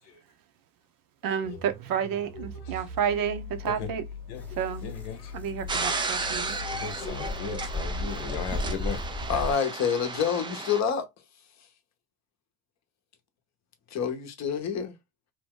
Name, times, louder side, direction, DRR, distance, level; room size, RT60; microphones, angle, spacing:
voice 1, 1.2-4.0 4.6-4.9 5.3-6.6, right 8 dB, 50° right, 0.7 m, -30 dB
sound 1, 1.4-8.4, left 4 dB, 80° right, 1.4 m, -41 dB
sound 2, 4.4-9.5, left 2 dB, 5° left, 0.8 m, -36 dB
voice 2, 4.8-5.3 6.8-9.0, left 6 dB, 70° left, 0.9 m, -37 dB
sound 3, 5.7-10.8, right 3 dB, 10° right, 0.3 m, -34 dB
voice 3, 9.3-11.1 13.9-14.9, left 7 dB, 35° left, 0.8 m, -27 dB
2.7 x 2.2 x 3.6 m
supercardioid pair, 85°, 45 cm